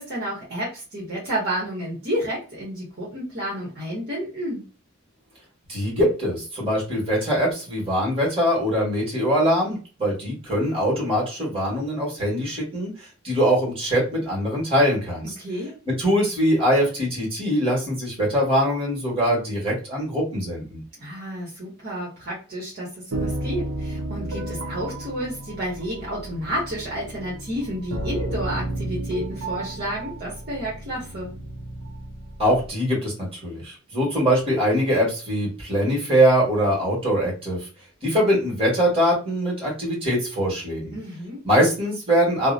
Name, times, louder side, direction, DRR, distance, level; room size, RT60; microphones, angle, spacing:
voice 1, 0.0-4.6 15.4-15.7 21.0-31.3 40.9-41.4, equal, 50° right, -6 dB, 1.0 m, -30 dB
voice 2, 5.7-15.3 16.0-20.8 32.4-37.7 38.0-40.9 41.4-42.5, equal, 30° right, -3 dB, 1.4 m, -22 dB
sound 1, 23.1-32.7, right 1 dB, 85° right, 0.7 m, -32 dB
2.7 x 2.1 x 2.5 m, 0.35 s
head